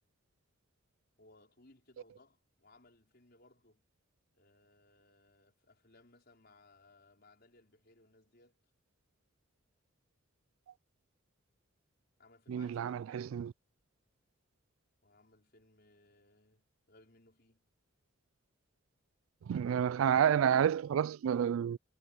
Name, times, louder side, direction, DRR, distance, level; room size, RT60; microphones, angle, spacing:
voice 1, 1.2-3.8 4.3-8.6 12.2-13.3 15.0-17.7, left 2 dB, 50° left, 4.9 m, -64 dB
voice 2, 12.5-13.5 19.5-21.8, right 8 dB, 80° right, 0.3 m, -29 dB
head